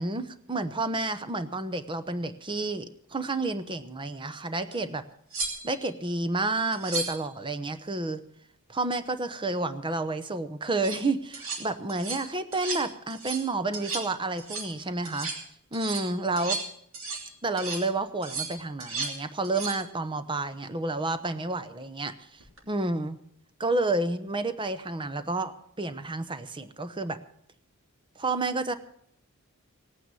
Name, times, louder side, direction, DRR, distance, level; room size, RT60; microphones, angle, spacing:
voice 1, 0.0-5.0 5.6-8.2 8.7-15.3 15.7-16.6 17.4-23.2 23.6-27.2 28.2-28.7, right 2 dB, 20° right, 11 dB, 0.9 m, -30 dB
sound 1, 4.7-4.8 5.3-5.9 6.7-7.3 10.6-11.0 11.3-11.6 11.9-12.3 12.5-12.9 13.1-13.5 13.7-14.1 14.4-14.7 15.1-15.4 15.7-17.3 17.6-17.9 18.2-19.2 19.4-19.8 22.4-22.6, right 4 dB, 65° right, 3.0 m, -34 dB
18.0 x 9.2 x 6.8 m, 0.69 s
head